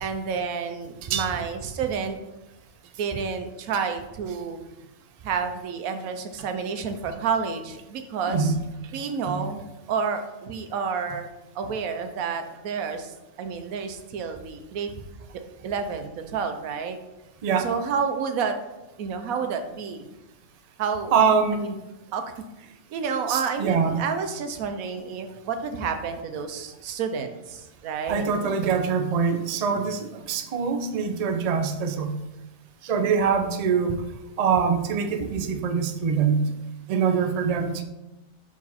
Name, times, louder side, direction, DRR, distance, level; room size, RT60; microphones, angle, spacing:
voice 1, 0.0-2.2 3.0-4.6 5.2-8.5 8.9-9.6 9.9-11.3 11.5-14.9 15.6-17.0 17.6-18.6 19.0-20.0 20.8-21.1 21.5-21.8 22.1-22.2 22.6-28.3 36.9-37.4, right 6 dB, 90° right, 7 dB, 1.2 m, -30 dB
voice 2, 8.3-8.6 9.2-9.5 17.4-17.7 21.1-21.7 23.3-24.0 28.1-32.2 32.8-34.0 34.4-36.5 36.9-37.8, right 6 dB, 50° right, 6 dB, 0.5 m, -24 dB
5.8 x 4.9 x 4.1 m, 1.0 s
omnidirectional pair, 1.4 m